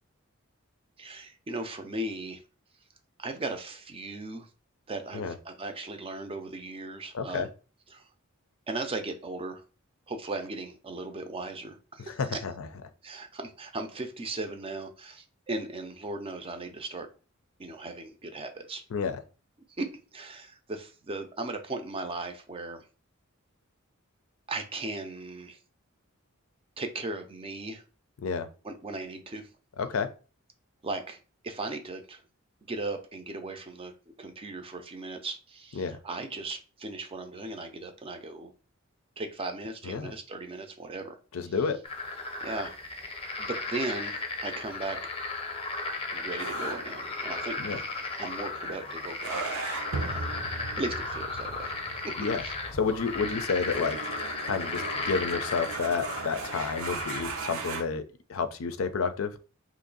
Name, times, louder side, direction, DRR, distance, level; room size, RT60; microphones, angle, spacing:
voice 1, 1.0-2.4 3.2-4.5 4.9-7.5 7.9-8.1 8.7-9.6 10.1-12.4 13.0-17.1 17.6-18.8 19.8-22.8 24.5-25.6 26.8-27.8 28.6-29.5 30.8-31.2 31.4-32.2 32.6-33.9 34.2-38.5 39.2-41.2 41.4-41.5 42.4-42.7 43.4-45.0 46.1-47.8 48.2-50.4 50.8-51.7 52.0-52.1 52.4-52.5, right 2 dB, 25° right, 6 dB, 0.5 m, -37 dB
voice 2, 7.1-7.5 12.0-12.7 18.9-19.2 28.2-28.5 29.8-30.1 35.8-36.0 39.8-40.1 41.3-41.8 47.6-47.8 52.2-52.4 52.7-54.0 54.4-58.0 58.3-59.3, left 5 dB, 70° left, 10 dB, 0.5 m, -30 dB
sound 1, 41.8-57.4, left 3 dB, 25° left, 0.6 m, -35 dB
sound 2, 46.4-57.8, right 4 dB, 90° right, 0.6 m, -39 dB
3.0 x 2.6 x 3.9 m, 0.35 s
head